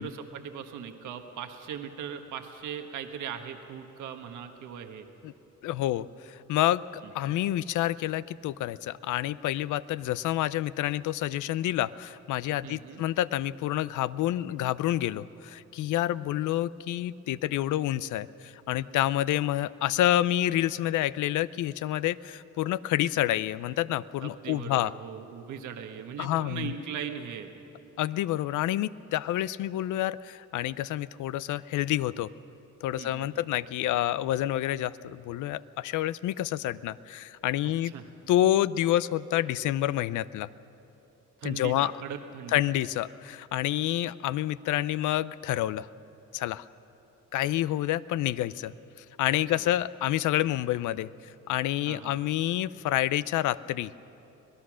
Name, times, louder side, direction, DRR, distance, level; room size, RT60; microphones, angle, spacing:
voice 1, 0.0-5.1 7.0-7.3 12.6-13.0 24.2-27.5 33.0-33.5 37.6-38.1 41.4-42.6 49.5-49.7 51.9-52.2, right 8 dB, 80° right, 5 dB, 1.4 m, -39 dB
voice 2, 5.6-24.9 26.2-26.7 28.0-32.3 32.8-37.9 38.3-40.5 41.4-41.9 42.5-45.9 46.3-46.6 47.3-48.7 49.2-51.1 51.5-53.9, left 13 dB, 80° left, 17 dB, 0.6 m, -28 dB
25.5 x 17.5 x 6.2 m, 3.0 s
cardioid pair, 90°, 30 cm